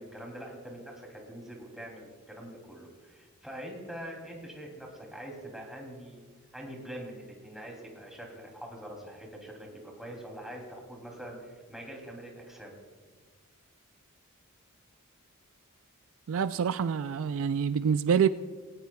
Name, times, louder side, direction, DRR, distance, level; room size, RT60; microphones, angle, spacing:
voice 1, 0.0-6.2 6.5-12.7, right 1 dB, ahead, 2.7 m, -44 dB
voice 2, 16.3-18.3, right 7 dB, 60° right, 0.3 m, -26 dB
19.5 x 17.5 x 2.3 m
head